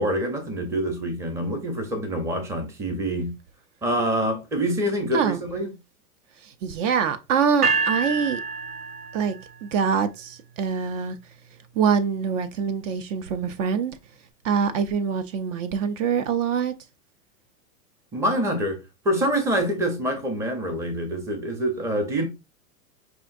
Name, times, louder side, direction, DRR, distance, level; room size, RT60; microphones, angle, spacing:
voice 1, 0.0-3.3 3.8-5.7 18.1-18.8 19.0-22.3, equal, 5° right, 0.5 m, -26 dB
voice 2, 6.6-8.4 9.1-9.4 9.6-11.2 11.8-14.0 14.4-16.7, right 6 dB, 55° right, 0.6 m, -24 dB
sound 1, 7.6-9.7, right 4 dB, 80° right, 1.1 m, -27 dB
5.5 x 2.6 x 2.5 m
hypercardioid pair, 115°, 46 cm